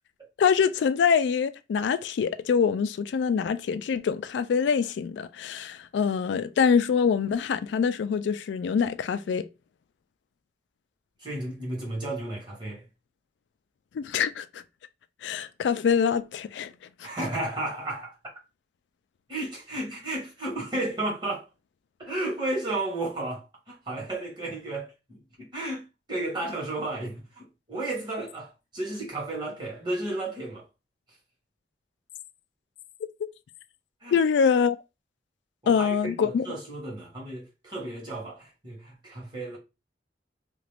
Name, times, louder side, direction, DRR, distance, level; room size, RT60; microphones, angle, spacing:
voice 1, 0.4-9.5 13.9-14.6 15.2-16.7 34.1-34.8 35.7-36.5, left 6 dB, 80° left, 0.3 m, -24 dB
voice 2, 11.2-12.9 17.0-18.1 19.3-21.4 22.0-30.7 34.0-34.1 35.6-39.6, right 2 dB, 25° right, 1.5 m, -33 dB
2.9 x 2.5 x 3.3 m
head